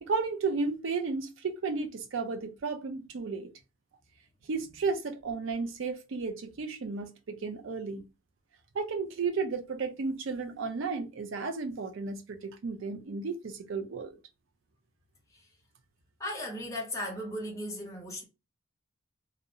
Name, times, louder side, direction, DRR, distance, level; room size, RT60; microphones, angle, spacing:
voice 1, 0.0-3.5 4.5-8.0 8.7-14.2, right 4 dB, 60° right, 0.4 m, -33 dB
voice 2, 16.2-18.2, left 1 dB, 15° left, 0.8 m, -36 dB
2.5 x 2.0 x 2.7 m
head